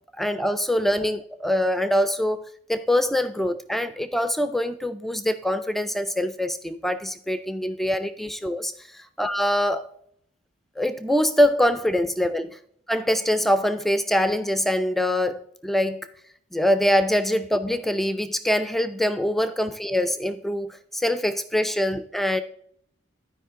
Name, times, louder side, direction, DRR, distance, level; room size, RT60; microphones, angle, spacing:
voice 1, 0.2-9.9 10.8-12.6 12.9-16.1 16.5-22.4, left 1 dB, ahead, 0.3 m, -24 dB
12.0 x 5.0 x 3.7 m
head